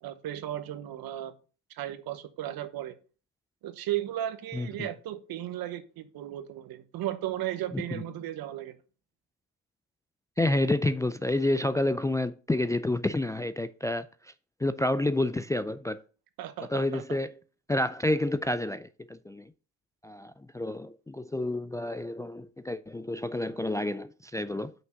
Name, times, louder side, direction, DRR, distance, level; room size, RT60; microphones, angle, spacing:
voice 1, 0.0-1.3 1.7-2.9 3.6-8.8 16.4-17.2, right 12 dB, 70° right, 1.1 m, -35 dB
voice 2, 4.5-4.9 7.7-8.0 10.4-14.1 14.6-16.0 16.7-17.3 17.7-19.4 20.0-24.7, left 1 dB, 10° left, 0.3 m, -29 dB
6.0 x 5.7 x 5.5 m
cardioid pair, 90°, 37 cm